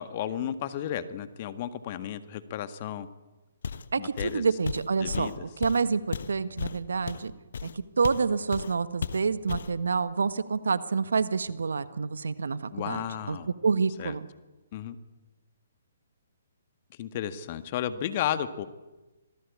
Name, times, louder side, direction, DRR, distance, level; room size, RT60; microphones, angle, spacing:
voice 1, 0.0-3.1 4.0-4.4 5.0-5.4 12.7-13.5 14.0-14.1 14.7-15.0 16.9-18.7, left 10 dB, 40° left, 11 dB, 1.7 m, -33 dB
Walk footsteps, 3.6-3.9 4.2-8.3 8.5-8.7 9.0-9.8, left 6 dB, 65° left, 1.2 m, -34 dB
voice 2, 3.9-7.3 7.6-7.7 8.0-13.4 13.6-14.2, right 5 dB, 75° right, 14 dB, 1.4 m, -28 dB
26.0 x 18.0 x 8.5 m, 1.1 s
hypercardioid pair, 135°, 0 cm